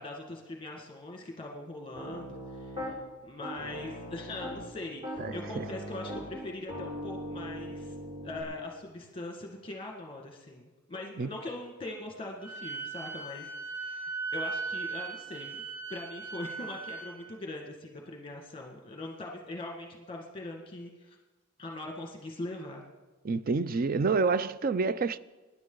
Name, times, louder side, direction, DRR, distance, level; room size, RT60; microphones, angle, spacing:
voice 1, 0.0-7.9 8.2-15.6 15.9-21.2 21.6-22.8, left 2 dB, 25° left, 1.6 m, -41 dB
Piano, 1.9-2.9 3.4-4.7 5.0-8.4, equal, 25° right, 4.5 m, -40 dB
voice 2, 5.2-5.7 11.2-11.3 23.2-25.2, right 4 dB, 40° right, 0.4 m, -28 dB
Wind instrument woodwind instrument, 12.4-17.2, right 4 dB, 75° right, 4.8 m, -38 dB
23.5 x 10.5 x 3.9 m
head